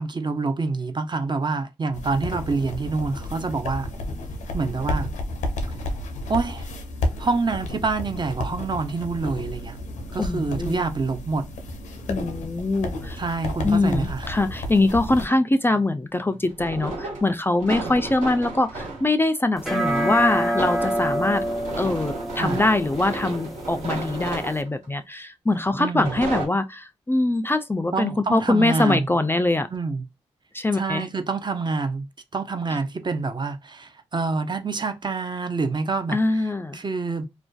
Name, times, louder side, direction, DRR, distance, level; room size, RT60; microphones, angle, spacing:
voice 1, 0.0-3.9 4.5-5.1 6.3-6.7 7.2-9.8 10.1-11.5 13.2-14.3 17.7-17.9 22.4-22.6 25.8-26.2 27.9-29.1 29.7-30.1 30.7-32.0 32.3-36.4 36.7-37.2, right 4 dB, 40° right, 0.5 m, -27 dB
sound 1, 1.9-15.2, left 1 dB, 90° left, 0.5 m, -32 dB
voice 2, 10.2-10.8 12.1-13.2 13.6-21.4 21.8-29.7 30.5-31.1 36.1-36.8, left 2 dB, 20° left, 0.3 m, -23 dB
sound 2, 16.5-19.1 19.6-24.9 25.7-26.5, right 2 dB, 80° right, 0.9 m, -33 dB
sound 3, 19.6-24.6, right 1 dB, ahead, 0.7 m, -28 dB
2.4 x 2.2 x 2.3 m
supercardioid pair, 40°, 12 cm